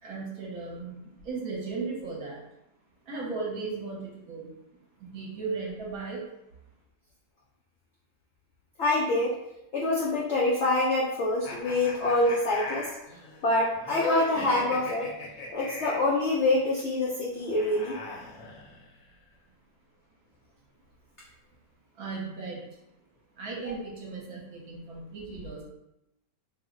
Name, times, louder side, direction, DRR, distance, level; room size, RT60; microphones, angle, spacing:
voice 1, 0.0-2.4 3.0-4.5 5.0-6.2 21.9-22.6 23.4-25.6, right 4 dB, 65° right, -3 dB, 1.1 m, -36 dB
voice 2, 8.8-9.4 9.7-12.9 13.4-15.1 15.5-18.0, left 2 dB, 80° left, -5 dB, 0.6 m, -26 dB
sound 1, 11.4-16.1 17.3-19.0, left 3 dB, 65° left, 1.1 m, -37 dB
3.0 x 2.1 x 3.6 m, 0.85 s
omnidirectional pair, 1.9 m